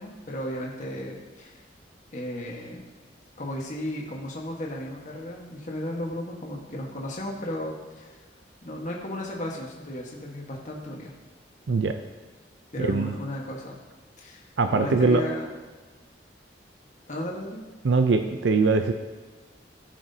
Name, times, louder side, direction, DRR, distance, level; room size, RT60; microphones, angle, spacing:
voice 1, 0.0-1.6 2.1-2.8 3.4-8.2 8.6-11.1 12.7-13.8 14.2-15.4 17.1-17.6, left 1 dB, 45° left, -2 dB, 1.3 m, -34 dB
voice 2, 12.8-13.1 14.6-15.2 17.8-18.9, right 4 dB, 85° right, 6 dB, 0.5 m, -22 dB
14.5 x 6.0 x 2.8 m, 1.3 s
head